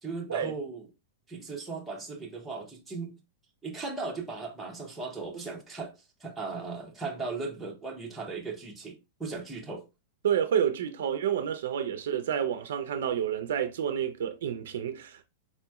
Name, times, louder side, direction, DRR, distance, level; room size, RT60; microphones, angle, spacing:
voice 1, 0.0-0.9 1.3-3.2 3.6-5.9 6.2-9.8, right 4 dB, 5° right, 0.6 m, -37 dB
voice 2, 10.2-15.2, right 9 dB, 65° right, 0.4 m, -29 dB
4.2 x 2.9 x 2.2 m
supercardioid pair, 180°, 0 cm